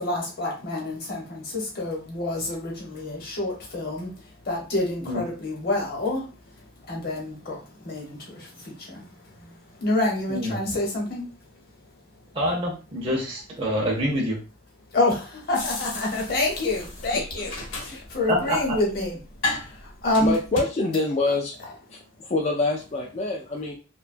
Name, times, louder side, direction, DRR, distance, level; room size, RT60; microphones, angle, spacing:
voice 1, 0.0-6.3 6.8-9.1 9.4-11.2 14.9-19.2 19.6-20.3 21.3-21.4, left 2 dB, 50° left, -1 dB, 0.9 m, -28 dB
voice 2, 12.3-14.4 18.3-18.6, equal, 30° right, -2 dB, 0.5 m, -26 dB
sound 1, 15.5-20.6, left 2 dB, 75° left, 0.9 m, -34 dB
voice 3, 20.2-21.5 21.9-23.7, left 3 dB, 35° left, 0 dB, 0.3 m, -26 dB
2.7 x 2.2 x 2.5 m, 0.33 s
head